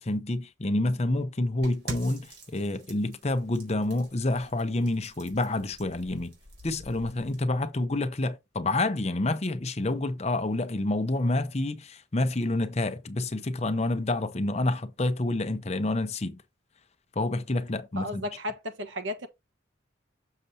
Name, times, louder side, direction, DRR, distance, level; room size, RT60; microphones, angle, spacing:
voice 1, 0.0-6.3 6.6-16.4 17.2-18.2, left 2 dB, 35° left, 0.7 m, -28 dB
sound 1, 1.6-7.4, right 1 dB, 55° right, 4.1 m, -45 dB
voice 2, 18.0-19.3, left 1 dB, 75° right, 1.4 m, -34 dB
6.7 x 6.7 x 2.8 m
head